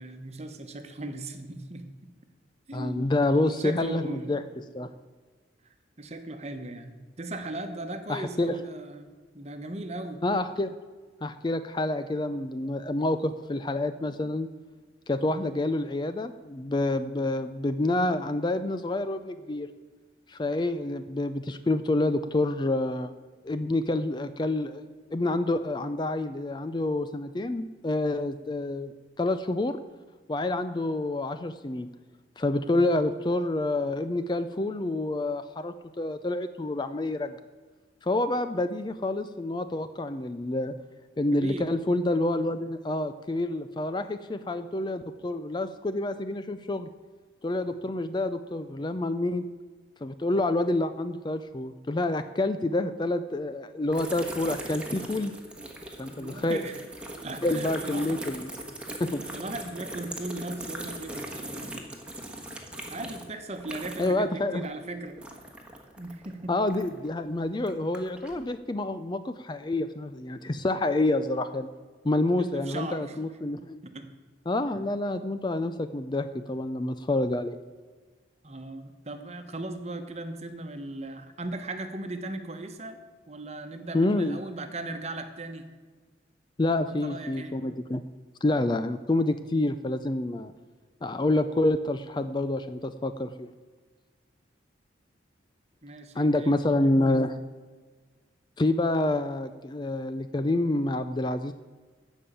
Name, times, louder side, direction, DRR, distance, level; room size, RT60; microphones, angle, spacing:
voice 1, 0.0-2.1 2.7-4.4 6.0-10.2 15.3-15.6 32.6-32.9 41.3-41.7 56.1-56.8 57.2-58.3 59.1-61.9 62.9-65.2 66.0-66.6 72.4-73.2 73.8-74.1 74.6-74.9 78.4-83.0 83.3-85.7 86.8-87.6 95.8-97.1, right 2 dB, 35° right, 7 dB, 1.1 m, -38 dB
voice 2, 2.7-4.4 4.7-4.9 8.1-8.6 10.2-10.7 11.2-14.5 15.1-19.7 20.3-23.1 23.4-24.8 25.1-29.8 30.3-31.9 32.4-37.4 38.0-40.7 41.2-46.9 47.4-49.5 50.0-55.3 56.0-56.6 57.4-58.5 59.0-59.2 64.0-64.6 66.5-71.7 72.0-73.8 74.5-77.6 83.9-84.4 86.6-88.0 88.4-90.5 91.0-93.5 96.2-97.4 98.6-101.5, left 2 dB, 25° left, 10 dB, 0.4 m, -28 dB
sound 1, 53.9-64.3 64.5-67.1 67.6-68.4, right 1 dB, 5° right, 1.3 m, -40 dB
13.5 x 5.4 x 8.9 m, 1.4 s
head